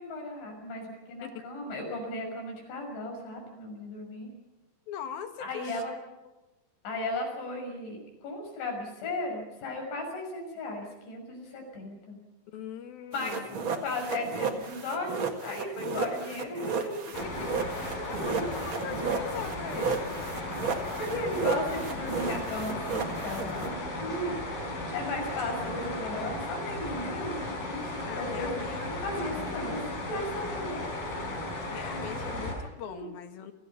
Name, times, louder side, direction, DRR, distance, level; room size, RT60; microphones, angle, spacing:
voice 1, 0.0-4.3 5.4-5.9 6.8-12.2 13.1-13.4 13.8-17.0 18.1-19.0 20.8-24.3 24.7-29.8 30.1-30.9 31.7-32.0 32.8-33.1, left 1 dB, 90° left, 2 dB, 8.6 m, -36 dB
voice 2, 4.9-5.8 12.5-13.5 17.1-20.2 28.1-29.1 31.7-33.5, left 8 dB, 65° left, 7 dB, 3.0 m, -41 dB
sound 1, 13.1-23.7, right 5 dB, 50° right, 1.4 m, -33 dB
sound 2, 17.1-32.5, left 2 dB, 45° left, 6.6 m, -36 dB
29.0 x 18.0 x 5.7 m, 1.1 s
omnidirectional pair, 5.2 m